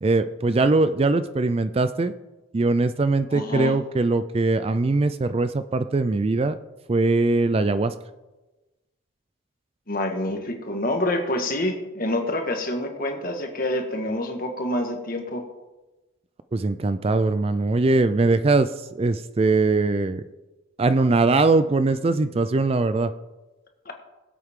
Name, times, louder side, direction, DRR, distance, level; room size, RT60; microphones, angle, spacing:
voice 1, 0.0-2.1 2.5-6.6 6.9-7.9 16.5-18.7 19.0-20.2 20.8-23.1, right 3 dB, 30° right, 12 dB, 0.3 m, -21 dB
voice 2, 3.3-3.8 9.9-15.4 23.8-23.9, left 1 dB, 45° left, 3 dB, 1.6 m, -27 dB
21.0 x 8.0 x 3.7 m, 1.1 s
head